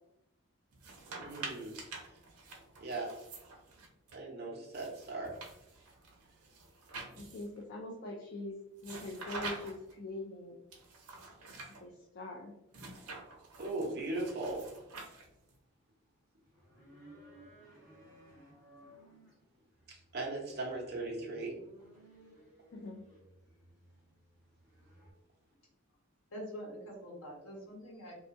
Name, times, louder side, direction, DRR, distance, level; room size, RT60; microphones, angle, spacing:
sound 1, 0.7-4.2 4.7-7.6 8.8-9.9 10.7-11.8 12.7-15.5, right 3 dB, 85° right, 0.6 m, -47 dB
voice 1, 1.2-1.8 2.8-3.1 4.1-5.4 13.6-14.7 19.9-21.5, right 2 dB, 45° right, -2 dB, 0.7 m, -38 dB
voice 2, 7.2-10.6 11.8-12.5 22.7-23.0, left 2 dB, 50° left, 0 dB, 0.3 m, -43 dB
sound 2, 16.4-25.1, right 1 dB, 5° left, 1.1 m, -59 dB
voice 3, 26.3-28.1, equal, 75° left, -3 dB, 1.0 m, -45 dB
2.6 x 2.4 x 2.5 m, 0.89 s
head